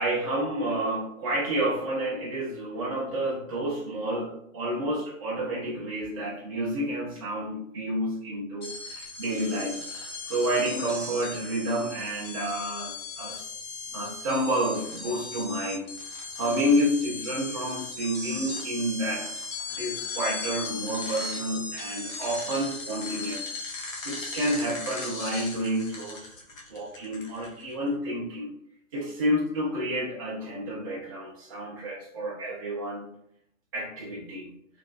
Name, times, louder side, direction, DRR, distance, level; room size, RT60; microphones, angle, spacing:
voice 1, 0.0-9.8 10.3-13.5 13.9-15.9 16.4-19.3 19.7-23.5 23.7-26.3 26.7-28.5 28.9-33.1 33.7-34.5, equal, 20° right, -6 dB, 0.3 m, -30 dB
sound 1, 8.6-27.7, left 3 dB, 70° left, 0.9 m, -37 dB
3.0 x 2.5 x 2.2 m, 0.73 s
figure-of-eight pair, 120°, 40 cm